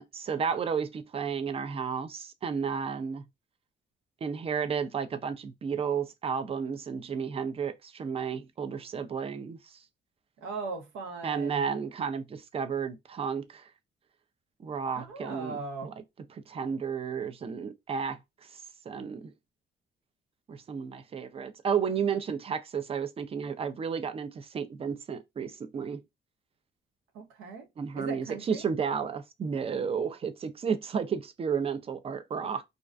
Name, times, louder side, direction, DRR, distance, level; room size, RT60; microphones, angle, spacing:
voice 1, 0.0-3.2 4.2-9.8 11.2-13.7 14.6-15.9 16.3-19.3 20.5-26.0 27.8-32.6, right 6 dB, 30° right, 0.4 m, -32 dB
voice 2, 10.4-11.7 14.9-16.0 27.1-27.7 27.9-28.6, right 4 dB, 90° right, 0.6 m, -39 dB
2.4 x 2.1 x 2.4 m
cardioid pair, 90°, 20 cm